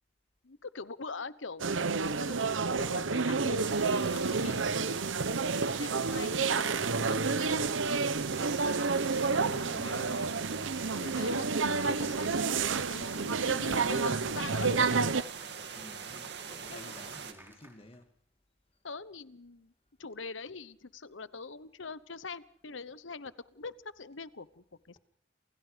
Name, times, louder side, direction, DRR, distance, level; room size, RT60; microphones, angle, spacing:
voice 1, 0.4-1.8 2.3-2.4 2.8-4.6 5.8-7.6 10.9-14.9 16.7-16.9 18.8-19.7 20.0-25.0, left 4 dB, 85° left, 1.1 m, -43 dB
sound 1, 1.6-15.2, right 4 dB, 85° right, 1.0 m, -30 dB
sound 2, 3.6-17.3, right 6 dB, 60° right, 2.5 m, -43 dB
voice 2, 9.0-10.4 15.7-18.1, left 1 dB, 30° left, 2.5 m, -50 dB
Cheering / Applause, 13.2-18.0, right 1 dB, 10° right, 5.0 m, -58 dB
28.5 x 28.0 x 5.2 m
head